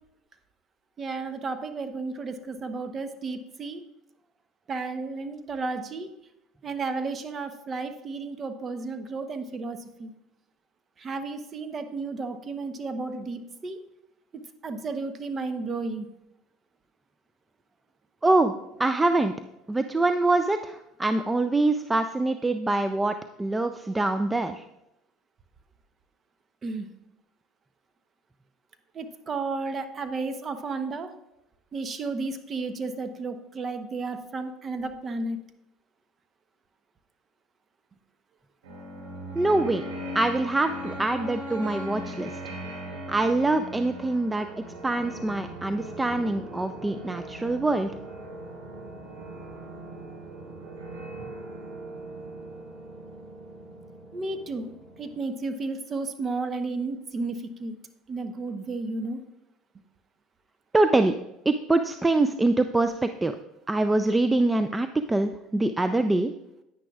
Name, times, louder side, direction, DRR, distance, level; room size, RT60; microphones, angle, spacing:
voice 1, 1.0-3.8 4.7-6.1 6.6-10.1 11.0-13.8 14.3-16.1 26.6-26.9 28.9-31.1 31.7-35.4 54.1-54.7 55.0-57.8 58.1-59.2, right 3 dB, 35° right, 9 dB, 0.9 m, -33 dB
voice 2, 18.2-18.5 18.8-19.3 19.7-24.6 39.3-39.8 40.1-42.3 43.1-47.9 60.7-61.1 61.5-63.3 63.7-66.3, right 2 dB, 15° right, 9 dB, 0.4 m, -24 dB
sound 1, 38.6-55.2, right 1 dB, 85° right, 3.3 m, -40 dB
9.8 x 9.6 x 2.4 m, 0.87 s
supercardioid pair, 85°, 0 cm